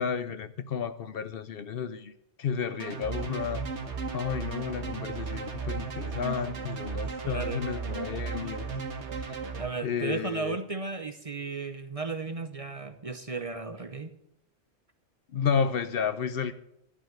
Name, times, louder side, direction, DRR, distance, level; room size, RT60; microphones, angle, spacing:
voice 1, 0.0-2.1 2.4-3.6 4.1-8.7 9.2-9.4 9.8-10.6 15.3-16.5, left 7 dB, 60° left, 0.9 m, -32 dB
sound 1, 2.8-9.7, right 5 dB, 90° right, 1.6 m, -35 dB
voice 2, 7.2-7.6 9.6-14.1, right 4 dB, 35° right, 0.8 m, -35 dB
12.5 x 5.6 x 8.9 m
omnidirectional pair, 1.1 m